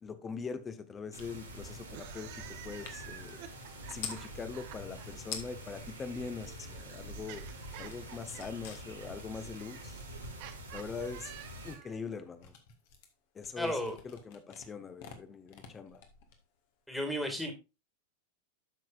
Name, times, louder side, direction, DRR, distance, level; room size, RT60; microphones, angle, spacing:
voice 1, 0.0-2.3 2.6-3.4 3.9-7.4 7.8-10.0 10.7-11.3 11.6-12.5 13.3-13.8 14.0-16.0, left 5 dB, 20° left, 1.2 m, -42 dB
sound 1, 1.1-11.8, right 1 dB, 75° right, 2.7 m, -46 dB
sound 2, 1.2-1.3 1.6-4.3 4.9-5.0 5.2-5.8 6.2-7.3 7.6-16.8, left 7 dB, 50° left, 1.8 m, -49 dB
sound 3, 1.8-5.1 6.1-12.0, right 11 dB, 45° right, 1.1 m, -51 dB
voice 2, 13.6-14.0 16.9-17.5, equal, ahead, 2.2 m, -33 dB
12.5 x 6.1 x 2.5 m
figure-of-eight pair, 90°, 0 cm